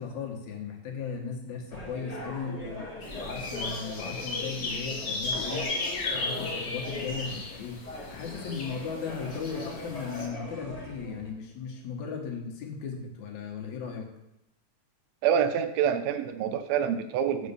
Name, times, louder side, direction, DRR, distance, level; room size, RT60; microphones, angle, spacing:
voice 1, 0.0-2.9 3.2-5.7 6.1-7.8 8.1-14.1, left 6 dB, 70° left, 1 dB, 2.6 m, -37 dB
sound 1, 1.7-11.3, left 1 dB, 15° left, 1.3 m, -40 dB
sound 2, 3.0-10.3, left 3 dB, 45° left, 1.7 m, -36 dB
voice 2, 15.2-17.5, right 8 dB, 75° right, 9 dB, 1.8 m, -26 dB
7.8 x 5.3 x 6.9 m, 0.85 s
omnidirectional pair, 3.5 m